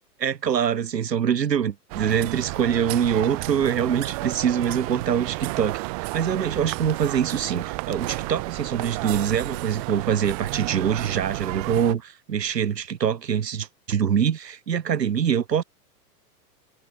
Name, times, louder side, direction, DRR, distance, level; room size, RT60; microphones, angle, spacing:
voice 1, 0.2-15.6, right 8 dB, 80° right, 2.1 m, -24 dB
sound 1, 1.9-11.9, right 29 dB, 25° right, 0.5 m, -32 dB
hypercardioid pair, 115°, 49 cm